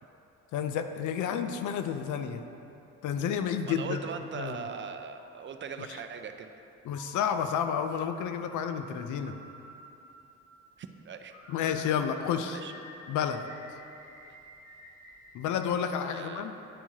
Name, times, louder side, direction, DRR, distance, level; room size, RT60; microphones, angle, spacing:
voice 1, 0.5-2.4 3.0-4.0 4.4-4.6 6.8-9.4 11.5-12.6 13.1-13.4 15.3-16.5, left 8 dB, 75° left, 8 dB, 0.5 m, -30 dB
voice 2, 3.7-6.5 10.8-11.3 11.8-11.9 12.5-12.7 16.1-16.5, right 6 dB, 40° right, 7 dB, 0.4 m, -40 dB
sound 1, 5.2-5.9 6.9-10.9 11.3-15.5, left 1 dB, 40° left, 1.3 m, -51 dB
10.0 x 4.5 x 2.8 m, 2.9 s
cardioid pair, 90°, 30 cm